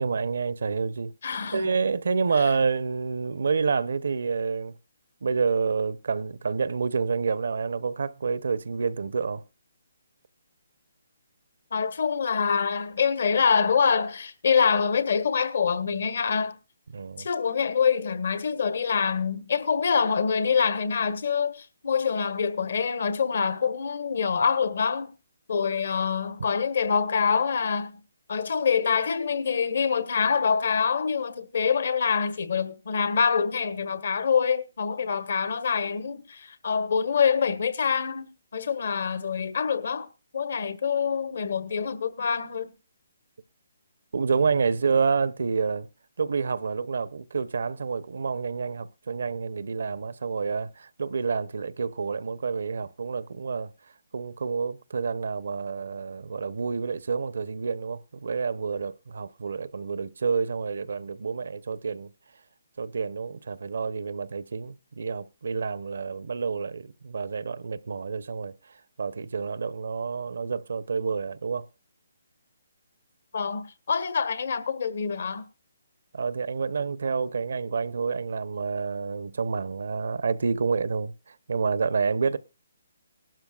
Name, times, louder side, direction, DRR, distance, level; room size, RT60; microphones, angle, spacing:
voice 1, 0.0-1.1 1.5-4.7 5.2-9.4 16.9-17.3 44.1-45.9 46.2-53.7 54.1-62.1 62.8-68.5 69.0-71.7 76.1-81.1 81.5-82.4, right 5 dB, 70° right, 0.8 m, -28 dB
voice 2, 1.2-1.7 11.7-16.5 17.2-25.1 25.5-27.9 28.3-40.1 40.3-42.7 73.3-75.4, left 6 dB, 65° left, 1.5 m, -25 dB
18.0 x 12.0 x 2.4 m
hypercardioid pair, 155°, 0 cm